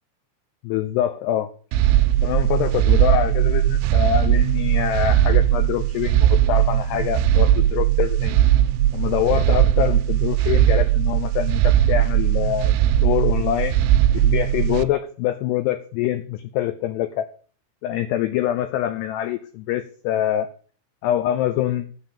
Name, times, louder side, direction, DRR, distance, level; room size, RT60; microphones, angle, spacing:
voice 1, 0.6-1.5 2.2-8.4 8.9-12.7 13.0-13.8 14.1-17.3 17.8-20.5 21.0-21.9, left 12 dB, 90° left, 10 dB, 2.3 m, -25 dB
sound 1, 1.7-14.8, right 12 dB, 85° right, 3.1 m, -19 dB
11.5 x 5.8 x 8.9 m, 0.42 s
omnidirectional pair, 5.7 m